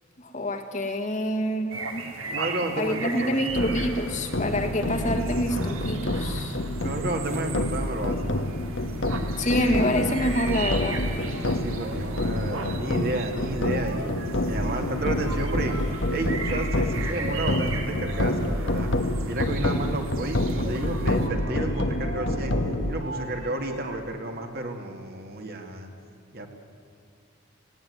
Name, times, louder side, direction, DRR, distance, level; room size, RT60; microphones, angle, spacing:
voice 1, 0.2-2.0 2.8-6.6 9.4-11.0, equal, 35° left, 4 dB, 1.7 m, -27 dB
sound 1, 1.7-21.3, right 4 dB, 80° right, 2.2 m, -38 dB
voice 2, 2.3-3.4 6.2-6.5 6.8-8.4 11.4-14.1 14.4-15.8 16.1-18.9 19.2-22.5 22.9-25.9 26.3-26.5, right 2 dB, 45° right, 3 dB, 2.2 m, -32 dB
sound 2, 3.5-22.9, left 1 dB, 60° left, 1.2 m, -28 dB
sound 3, 9.9-20.0 20.6-24.0, right 2 dB, 65° right, 1.7 m, -41 dB
18.5 x 17.5 x 9.5 m, 2.4 s
head